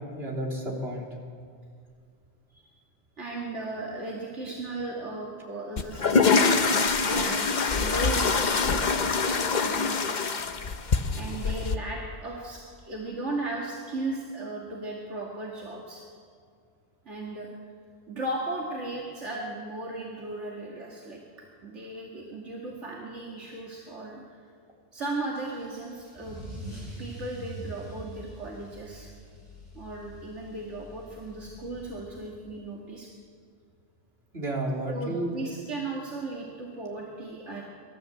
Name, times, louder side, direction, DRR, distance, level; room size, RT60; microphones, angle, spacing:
voice 1, 0.1-1.1 34.3-35.4, right 1 dB, 60° right, -2 dB, 4.0 m, -31 dB
voice 2, 3.2-9.2 9.6-10.2 11.1-16.0 17.1-17.5 18.1-21.2 21.6-24.2 24.9-26.4 27.0-29.1 29.7-33.1 34.9-37.6, right 2 dB, 80° right, -3 dB, 2.5 m, -36 dB
sound 1, 5.8-11.8, left 4 dB, 40° left, 1.0 m, -24 dB
Car / Engine starting / Accelerating revving vroom, 25.3-32.5, right 1 dB, 35° right, 7.7 m, -44 dB
26.5 x 13.5 x 7.9 m, 2.2 s
omnidirectional pair, 1.2 m